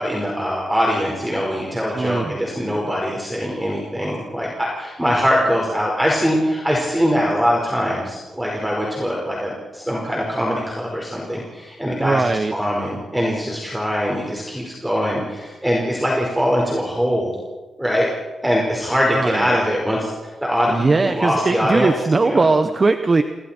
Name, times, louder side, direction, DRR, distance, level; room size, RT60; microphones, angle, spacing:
voice 1, 0.0-17.4 17.8-18.1 18.4-21.9 22.2-22.5, equal, 5° right, -2 dB, 5.0 m, -22 dB
voice 2, 1.9-2.4 12.0-12.5 19.1-19.5 20.7-23.2, right 3 dB, 30° right, 8 dB, 1.1 m, -19 dB
29.0 x 24.5 x 4.6 m, 1.2 s
wide cardioid pair, 115°, 0 cm